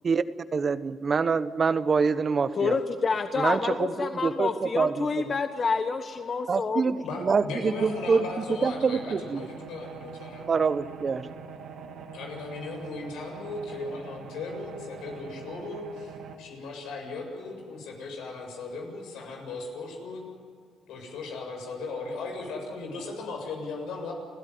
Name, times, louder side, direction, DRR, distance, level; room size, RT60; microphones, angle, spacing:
voice 1, 0.5-2.8 3.4-5.1 6.5-8.3 8.6-9.5 10.5-11.3, right 5 dB, 40° right, 13 dB, 1.0 m, -25 dB
voice 2, 2.6-6.9, left 4 dB, 40° left, 8 dB, 1.2 m, -28 dB
voice 3, 7.0-10.4 12.1-20.2 20.9-24.1, left 3 dB, 85° left, 2 dB, 7.3 m, -37 dB
sound 1, 7.7-16.4, right 6 dB, 80° right, 2.6 m, -44 dB
29.5 x 16.0 x 9.5 m, 2.2 s
cardioid pair, 100°, 0 cm